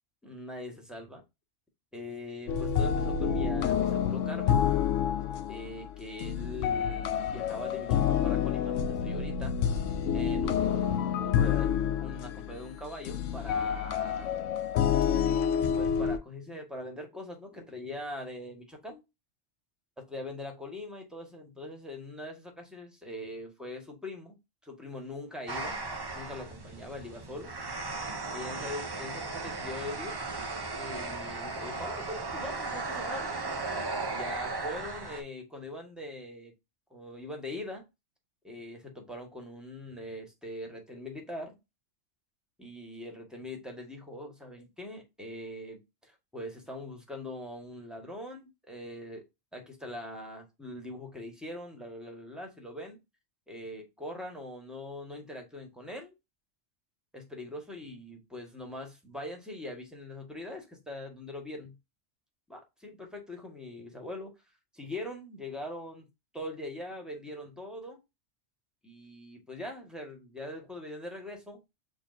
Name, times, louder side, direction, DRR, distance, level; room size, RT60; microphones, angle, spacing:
voice 1, 0.2-1.2 1.9-4.6 5.5-9.5 10.1-11.7 12.0-14.3 15.7-19.0 20.1-25.8 26.1-27.5 28.3-30.2 30.7-33.3 34.1-36.5 36.9-37.9 38.4-41.5 42.6-49.2 49.5-53.0 53.5-56.1 57.1-61.8 62.5-64.3 64.7-66.1 66.3-68.0 68.8-71.6, left 1 dB, ahead, 1.5 m, -42 dB
sound 1, 2.5-16.2, left 8 dB, 90° left, 0.9 m, -28 dB
sound 2, 25.5-35.2, right 3 dB, 25° right, 0.5 m, -36 dB
6.5 x 2.9 x 2.7 m
omnidirectional pair, 1.2 m